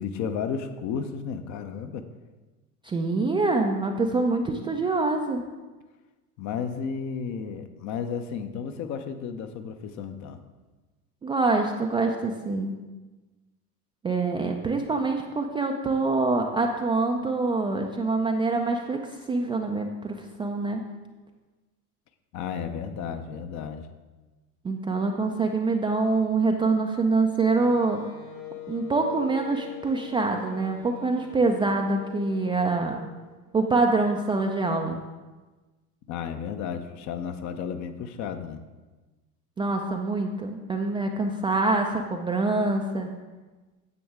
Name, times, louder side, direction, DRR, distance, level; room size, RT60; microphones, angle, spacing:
voice 1, 0.0-2.1 6.4-10.4 22.3-23.9 36.1-38.6, left 6 dB, 40° left, 9 dB, 0.7 m, -33 dB
voice 2, 2.8-5.4 11.2-12.7 14.0-20.8 24.6-28.0 28.7-33.0 33.5-35.0 39.6-43.1, right 3 dB, 10° right, 2 dB, 0.4 m, -25 dB
Wind instrument woodwind instrument, 27.6-33.2, left 9 dB, 70° left, 2.0 m, -43 dB
9.5 x 7.8 x 3.5 m, 1.2 s
figure-of-eight pair, 80°, 46 cm